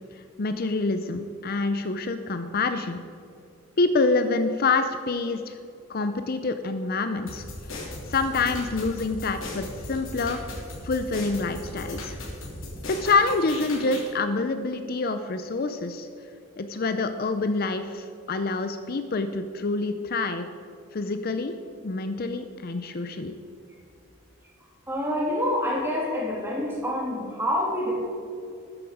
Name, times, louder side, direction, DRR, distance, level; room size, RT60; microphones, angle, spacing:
voice 1, 0.4-3.0 3.8-5.6 5.9-7.4 8.1-10.4 10.8-12.2 12.8-16.1 16.6-20.5 20.9-21.5 21.8-23.3, left 3 dB, 45° left, 9 dB, 0.5 m, -26 dB
sound 1, 7.3-14.1, left 2 dB, 75° left, 3.2 m, -37 dB
voice 2, 24.9-28.0, left 1 dB, 10° right, -3 dB, 2.9 m, -27 dB
13.5 x 9.8 x 5.0 m, 2.5 s
head